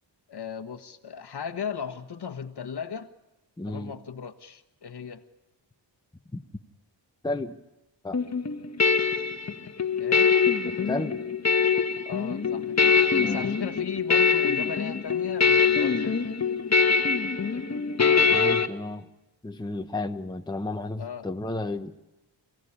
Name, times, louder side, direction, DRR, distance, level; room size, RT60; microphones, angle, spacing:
voice 1, 0.3-3.1 3.7-5.2 10.0-10.3 12.0-16.3 21.0-21.2, left 7 dB, 55° left, 9 dB, 1.4 m, -37 dB
voice 2, 3.6-3.9 6.3-6.4 7.2-7.6 8.0-8.2 10.7-11.2 13.1-13.5 18.3-19.1 19.4-21.9, left 2 dB, 10° left, 6 dB, 0.9 m, -32 dB
sound 1, 8.1-18.7, left 5 dB, 35° left, 1.3 m, -23 dB
27.5 x 17.0 x 10.0 m, 1.0 s
wide cardioid pair, 125°, 46 cm